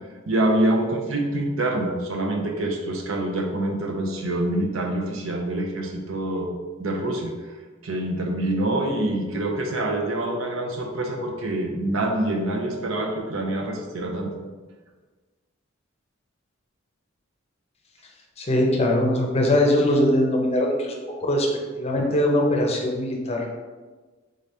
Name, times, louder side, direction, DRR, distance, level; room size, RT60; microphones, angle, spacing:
voice 1, 0.3-6.5 6.8-7.5 7.8-14.3, right 1 dB, 90° right, 2 dB, 0.6 m, -26 dB
voice 2, 18.4-21.5 21.8-23.5, left 1 dB, 30° left, 0 dB, 0.6 m, -21 dB
3.8 x 3.3 x 2.7 m, 1.3 s
head